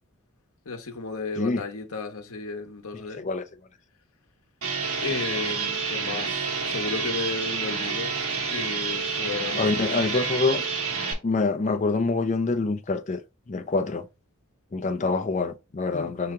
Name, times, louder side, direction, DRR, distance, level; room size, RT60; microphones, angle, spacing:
voice 1, 0.7-3.2 5.0-8.1 8.5-10.1 15.9-16.1, left 4 dB, 75° left, 0.8 m, -34 dB
voice 2, 2.9-3.5 9.6-10.6 11.2-13.2 13.5-14.1 14.7-16.3, left 3 dB, 30° left, 0.4 m, -26 dB
sound 1, 4.6-11.1, right 5 dB, 80° right, 1.2 m, -29 dB
4.7 x 2.9 x 3.5 m
head